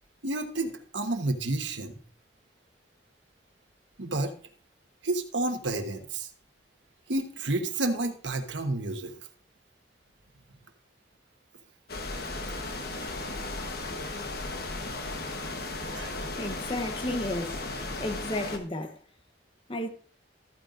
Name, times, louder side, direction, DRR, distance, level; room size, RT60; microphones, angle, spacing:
voice 1, 0.2-1.9 4.0-4.3 5.0-6.3 7.1-9.1 15.9-16.1, right 2 dB, 85° right, 1.2 m, -30 dB
sound 1, 11.9-18.6, left 2 dB, 55° left, 1.2 m, -35 dB
voice 2, 16.3-17.6 18.0-19.0 19.7-19.9, left 1 dB, 30° left, 0.9 m, -33 dB
13.5 x 8.9 x 2.6 m
head